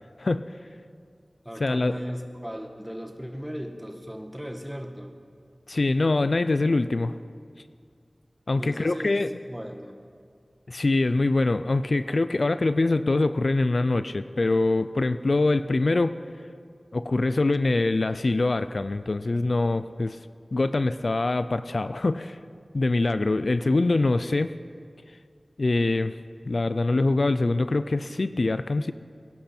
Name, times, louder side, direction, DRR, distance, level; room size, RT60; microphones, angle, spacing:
voice 1, 0.2-0.6 1.6-1.9 5.7-7.1 8.5-9.3 10.7-16.1 16.9-20.2 20.5-22.4 22.7-24.5 25.6-26.1 26.4-28.9, left 2 dB, 65° left, 12 dB, 0.4 m, -24 dB
voice 2, 1.4-5.1 8.6-10.0, equal, 10° right, 4 dB, 1.4 m, -37 dB
22.0 x 11.5 x 4.4 m, 2.2 s
wide cardioid pair, 60°, 0 cm